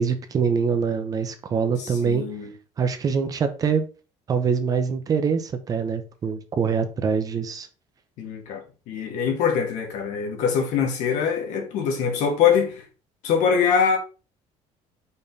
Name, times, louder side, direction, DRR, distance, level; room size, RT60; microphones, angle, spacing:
voice 1, 0.0-2.2 2.8-3.8 4.3-7.7, right 6 dB, 25° right, 0.7 m, -24 dB
voice 2, 1.8-2.5 8.2-12.8 13.2-14.0, left 7 dB, 65° left, 2.0 m, -23 dB
5.4 x 4.4 x 5.3 m
cardioid pair, 165°, 13 cm